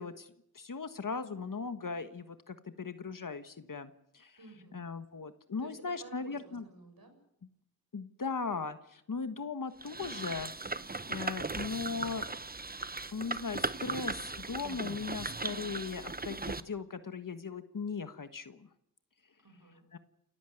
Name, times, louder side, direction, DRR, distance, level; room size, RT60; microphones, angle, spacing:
voice 1, 0.0-4.4 4.7-6.6 7.9-10.5 11.1-12.3 13.1-18.7 19.9-20.0, left 5 dB, 60° left, 10 dB, 1.4 m, -38 dB
voice 2, 4.4-4.8 5.6-7.1 19.4-19.9, right 2 dB, 80° right, 5 dB, 7.2 m, -53 dB
sound 1, 9.8-16.6, right 3 dB, 25° right, 1.0 m, -38 dB
29.0 x 14.5 x 9.2 m, 0.75 s
wide cardioid pair, 90°, 36 cm